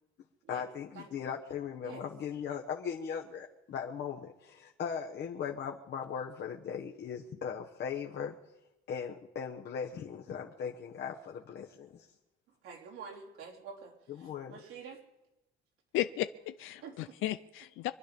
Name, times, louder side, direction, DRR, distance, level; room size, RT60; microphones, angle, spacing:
voice 1, 0.5-8.3 8.9-12.1 14.1-14.6, left 7 dB, 55° left, 1 dB, 1.3 m, -38 dB
voice 2, 12.6-13.9 14.2-15.0 16.8-16.9, right 5 dB, 90° right, -2 dB, 4.2 m, -47 dB
voice 3, 15.9-17.9, left 14 dB, 80° left, 11 dB, 0.6 m, -34 dB
25.5 x 10.0 x 5.4 m, 0.94 s
cardioid pair, 125°, 20 cm